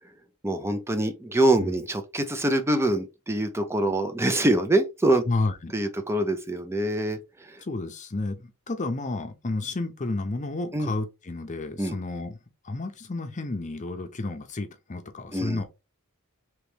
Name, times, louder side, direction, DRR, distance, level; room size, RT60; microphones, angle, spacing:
voice 1, 0.4-5.2 5.7-7.6 10.7-10.9 11.8-12.0 15.3-15.6, right 1 dB, 10° right, 0.5 m, -25 dB
voice 2, 5.3-5.7 7.6-12.3 12.6-15.6, left 2 dB, 35° left, 0.6 m, -31 dB
3.1 x 3.0 x 3.4 m
head